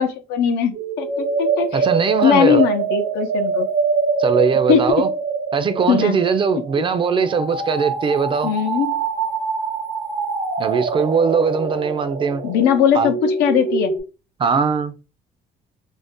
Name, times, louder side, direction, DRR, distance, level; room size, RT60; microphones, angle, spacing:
voice 1, 0.0-1.8 2.2-3.7 4.7-4.8 5.9-6.2 8.4-9.0 12.4-13.9, left 8 dB, 90° left, 0.6 m, -19 dB
sound 1, 0.7-14.0, right 5 dB, 75° right, 1.0 m, -24 dB
voice 2, 1.7-2.6 4.2-5.1 5.5-8.5 10.6-12.4 12.9-13.1 14.4-14.9, right 5 dB, 30° right, 0.4 m, -20 dB
2.5 x 2.1 x 3.5 m
cardioid pair, 110°, 17 cm